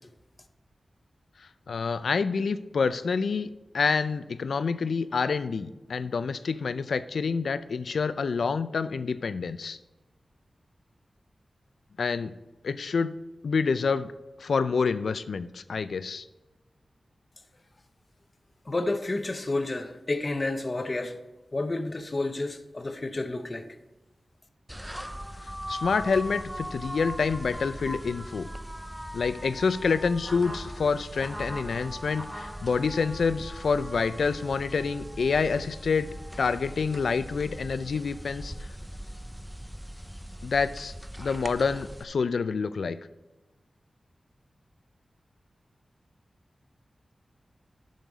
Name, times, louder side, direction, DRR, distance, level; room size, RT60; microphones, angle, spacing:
voice 1, 1.7-9.8 12.0-12.3 12.6-13.1 13.4-14.1 14.4-16.2 25.4-28.5 29.1-38.5 40.4-43.0, left 5 dB, 85° left, 0.4 m, -27 dB
voice 2, 18.7-21.2 21.5-23.8, left 2 dB, 35° left, 0.7 m, -30 dB
sound 1, 24.7-42.0, equal, 5° right, 0.4 m, -39 dB
10.5 x 6.5 x 4.0 m
wide cardioid pair, 95°, 0 cm